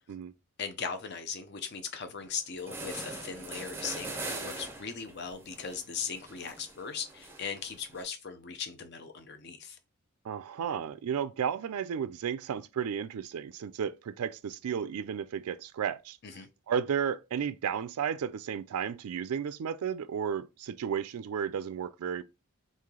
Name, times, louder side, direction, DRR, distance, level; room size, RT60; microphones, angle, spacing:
voice 1, 0.6-4.1 4.4-9.8 16.2-16.5, left 6 dB, 50° left, 0.5 m, -38 dB
sound 1, 2.2-2.3 2.6-8.0, right 2 dB, 10° right, 0.5 m, -42 dB
voice 2, 10.2-16.2 16.7-22.2, right 8 dB, 90° right, 0.3 m, -33 dB
3.1 x 2.7 x 3.7 m
head